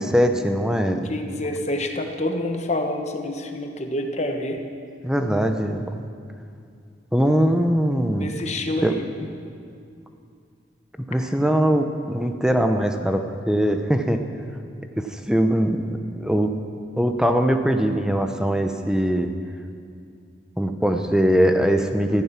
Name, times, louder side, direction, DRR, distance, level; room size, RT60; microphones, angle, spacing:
voice 1, 0.0-1.1 5.0-5.8 7.1-8.3 8.8-8.9 11.1-14.2 14.9-15.8 16.2-16.5 17.0-19.3 20.6-22.2, equal, 5° right, 6 dB, 0.8 m, -21 dB
voice 2, 0.8-4.6 8.2-9.0, left 1 dB, 35° left, 4 dB, 1.2 m, -27 dB
15.5 x 14.5 x 6.0 m, 2.4 s
head